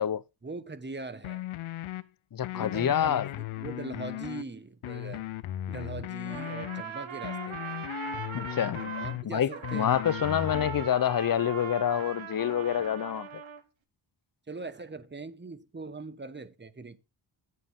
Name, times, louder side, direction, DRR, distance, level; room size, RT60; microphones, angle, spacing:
voice 1, 0.4-1.4 2.5-5.3 5.7-7.8 8.7-9.9 12.8-12.9 14.5-17.0, right 3 dB, 20° right, 1.2 m, -41 dB
sound 1, 1.2-2.0 2.4-4.4 4.8-6.8 7.2-9.2 9.6-10.8, left 14 dB, 85° left, 0.7 m, -37 dB
voice 2, 2.3-3.3 8.3-8.8 9.2-13.4, left 10 dB, 45° left, 0.7 m, -27 dB
Trumpet, 6.2-9.2 9.5-13.6, right 7 dB, 70° right, 1.8 m, -40 dB
9.3 x 7.7 x 3.7 m
cardioid pair, 70°, 48 cm